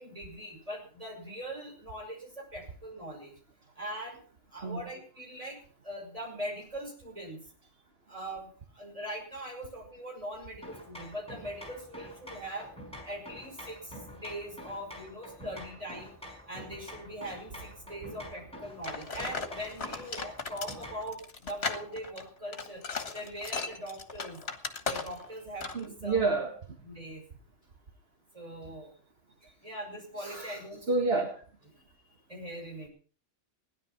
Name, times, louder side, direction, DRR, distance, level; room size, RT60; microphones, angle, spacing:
voice 1, 0.0-3.3 3.8-4.2 4.5-5.6 5.8-7.4 8.1-8.5 8.7-12.7 13.0-16.1 16.5-22.8 23.1-24.4 24.9-26.2 26.8-27.2 28.3-28.9 29.6-30.8 31.1-31.2 32.3-32.9, right 1 dB, 30° right, -1 dB, 6.4 m, -41 dB
sound 1, 10.6-21.2, equal, 5° left, 5.7 m, -47 dB
sound 2, 18.8-25.3 25.6-25.9, left 4 dB, 60° left, 1.7 m, -37 dB
voice 2, 25.7-26.8 30.2-31.3, right 3 dB, 55° right, 3 dB, 2.0 m, -30 dB
17.0 x 11.0 x 5.9 m, 0.42 s
omnidirectional pair, 1.2 m